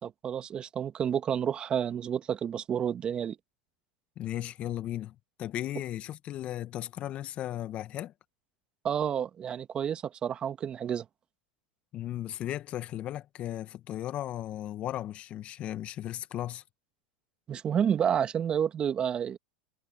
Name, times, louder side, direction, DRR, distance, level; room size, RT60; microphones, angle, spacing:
voice 1, 0.0-3.4 8.8-11.1 17.5-19.4, right 8 dB, 30° right, 1.8 m, -30 dB
voice 2, 4.1-8.1 11.9-16.6, left 13 dB, 40° left, 1.7 m, -36 dB
hypercardioid pair, 110°, 3 cm